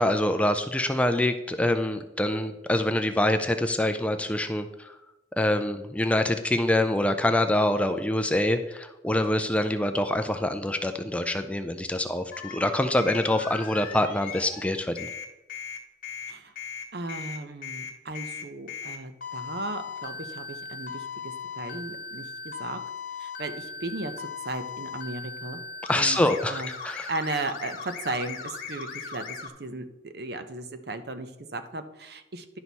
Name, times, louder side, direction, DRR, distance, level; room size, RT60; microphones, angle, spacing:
voice 1, 0.0-5.0 5.4-15.1 25.9-27.1, left 1 dB, 5° left, 8 dB, 0.4 m, -25 dB
sound 1, 12.3-14.7 15.0-29.5, left 5 dB, 45° left, 1.5 m, -38 dB
voice 2, 16.9-22.8 23.2-25.6 25.9-26.2 26.5-32.6, right 2 dB, 55° right, 9 dB, 0.8 m, -36 dB
10.5 x 6.2 x 4.1 m, 0.97 s
head